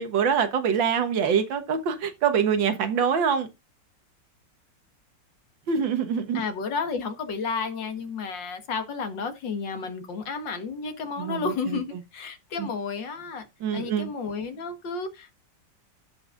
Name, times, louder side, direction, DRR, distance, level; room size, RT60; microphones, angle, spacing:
voice 1, 0.0-3.5 5.7-6.4 11.2-11.8 12.6-12.7 13.6-14.1, right 7 dB, 85° right, 2.0 m, -25 dB
voice 2, 6.3-13.5 13.7-15.4, left 4 dB, 80° left, 2.2 m, -32 dB
16.0 x 5.5 x 2.5 m
omnidirectional pair, 2.0 m